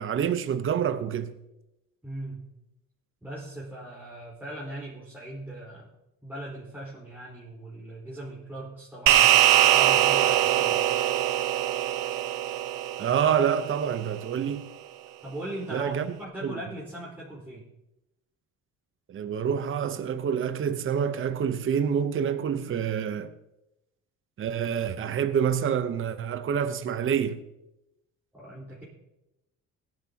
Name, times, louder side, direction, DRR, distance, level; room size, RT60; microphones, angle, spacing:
voice 1, 0.0-1.3 13.0-14.7 15.7-16.1 16.4-16.6 19.1-23.3 24.4-27.4, right 8 dB, 40° right, 0.8 m, -27 dB
voice 2, 2.0-2.4 3.2-5.9 6.2-9.3 9.7-10.8 15.2-17.6 28.3-28.8, right 1 dB, 5° right, 4.2 m, -39 dB
sound 1, 9.1-13.7, right 13 dB, 85° right, 0.9 m, -22 dB
17.5 x 10.5 x 2.9 m
cardioid pair, 95°, 32 cm